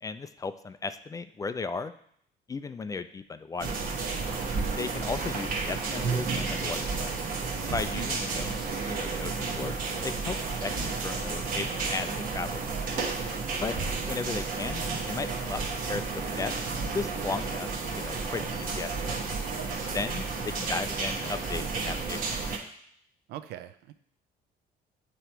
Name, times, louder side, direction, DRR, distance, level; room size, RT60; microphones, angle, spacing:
voice 1, 0.0-1.9 2.5-3.8 4.8-7.1 7.7-9.8 10.0-10.4 10.6-10.7 11.0-12.6 13.6-13.8 14.0-15.6 15.9-16.5 16.9-19.2 19.9-22.2 22.6-22.7, left 4 dB, 20° left, 11 dB, 0.3 m, -35 dB
sound 1, 3.6-22.6, right 4 dB, 55° right, 1.1 m, -32 dB
voice 2, 17.1-17.4 19.6-19.9 23.3-23.9, right 12 dB, 80° right, 11 dB, 0.5 m, -42 dB
8.1 x 3.0 x 4.5 m, 0.66 s
cardioid pair, 110°, 17 cm